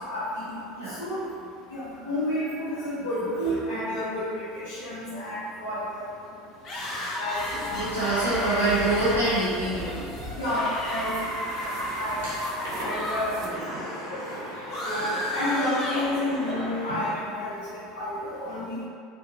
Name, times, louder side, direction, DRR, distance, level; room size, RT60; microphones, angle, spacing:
voice 1, 0.1-0.4 1.0-1.2 1.7-6.1 7.2-8.6 10.3-11.7 11.9-12.3 12.8-13.3 14.8-18.7, left 1 dB, 70° left, -12 dB, 0.8 m, -30 dB
sound 1, 6.6-13.2 13.5-16.7, left 1 dB, 40° left, 0.9 m, -34 dB
sound 2, 7.3-13.5, equal, 50° right, 0.5 m, -40 dB
voice 2, 7.7-10.1 13.5-14.9, right 2 dB, 90° right, -13 dB, 0.8 m, -27 dB
sound 3, 11.1-17.2, equal, 65° right, 1.1 m, -38 dB
2.9 x 2.6 x 2.7 m, 2.4 s
figure-of-eight pair, 70°, 0 cm